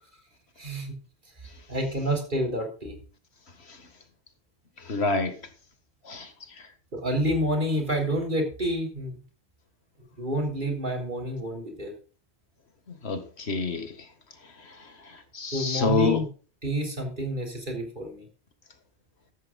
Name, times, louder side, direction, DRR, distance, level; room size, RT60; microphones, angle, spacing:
voice 1, 0.6-0.9 1.7-3.0 6.9-9.2 10.2-11.9 15.5-16.3 16.6-18.3, equal, 50° right, 3.8 m, -28 dB
voice 2, 4.9-5.3 6.1-6.3 13.0-13.9 15.3-16.2, left 3 dB, 70° left, 2.0 m, -26 dB
14.0 x 12.5 x 2.4 m
omnidirectional pair, 1.1 m